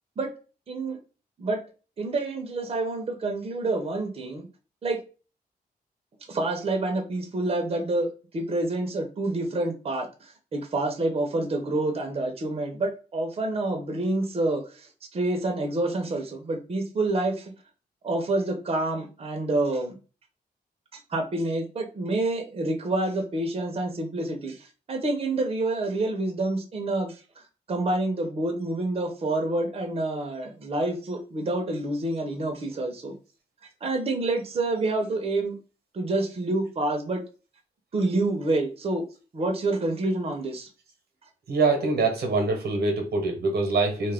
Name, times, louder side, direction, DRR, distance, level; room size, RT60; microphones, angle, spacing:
voice 1, 0.7-1.0 1.4-1.6 2.0-4.5 4.8-5.0 6.3-17.5 18.0-20.0 21.1-27.4 27.7-33.2 33.6-35.6 35.9-37.2 37.9-39.0 39.3-40.7, right 2 dB, 35° right, 3 dB, 0.6 m, -28 dB
voice 2, 41.5-44.1, right 3 dB, 90° right, 4 dB, 0.8 m, -24 dB
2.3 x 2.1 x 3.4 m, 0.34 s
cardioid pair, 105°, 16 cm